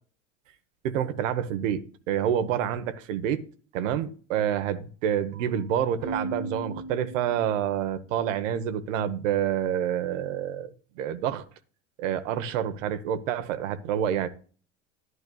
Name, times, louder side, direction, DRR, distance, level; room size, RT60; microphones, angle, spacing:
voice 1, 0.8-3.4 3.7-11.4 12.0-14.3, right 9 dB, 75° right, 1.0 m, -28 dB
Keyboard (musical), 6.0-7.8, right 2 dB, 55° right, 1.6 m, -37 dB
11.0 x 10.5 x 2.3 m
hypercardioid pair, 85°, 38 cm